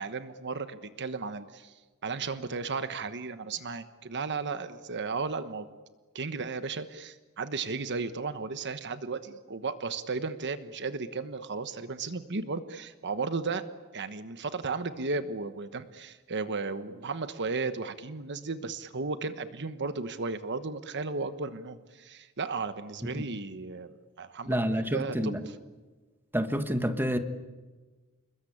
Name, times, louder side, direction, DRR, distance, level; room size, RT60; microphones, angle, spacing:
voice 1, 0.0-1.7 2.0-5.7 6.1-13.6 13.9-23.9 24.2-24.6 24.9-25.3, right 4 dB, 55° right, 1.2 m, -34 dB
voice 2, 24.5-25.4 26.3-27.2, equal, 10° right, 1.7 m, -28 dB
28.0 x 21.5 x 8.7 m
head